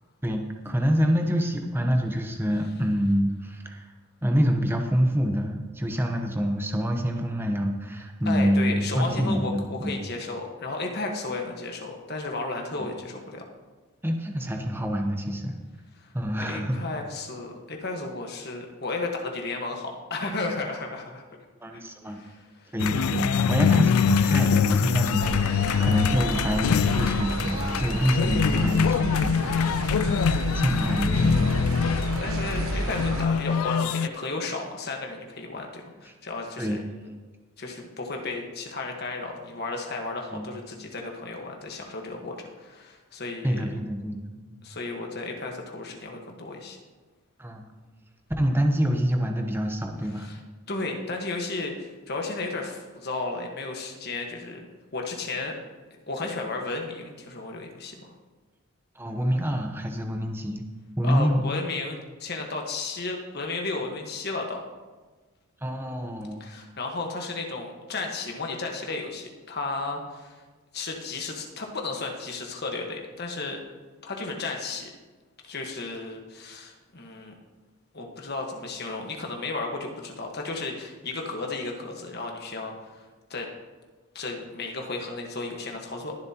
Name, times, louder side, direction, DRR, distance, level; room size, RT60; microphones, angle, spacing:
voice 1, 0.6-3.9 4.2-10.0 12.8-12.9 14.0-15.5 16.1-16.8 21.6-22.2 22.7-31.8 36.6-36.8 40.3-40.5 43.4-44.6 47.4-47.6 48.4-50.3 59.0-60.6 61.0-61.4 65.6-66.5, equal, 10° right, 3 dB, 0.9 m, -26 dB
voice 2, 8.2-13.4 16.0-21.2 21.7-21.8 22.0-22.7 32.2-36.8 37.6-43.6 44.6-46.8 50.0-50.4 50.7-54.6 54.9-55.5 56.1-58.1 61.0-64.6 66.4-70.4 70.7-73.6 74.0-74.9 75.4-77.4 77.9-82.9 83.3-83.5 84.1-86.1, left 3 dB, 50° left, 2 dB, 1.5 m, -34 dB
sound 1, 22.8-34.1, left 7 dB, 90° left, 0.3 m, -24 dB
sound 2, 25.2-33.3, right 2 dB, 85° right, 0.9 m, -31 dB
21.5 x 7.4 x 3.0 m, 1.3 s
head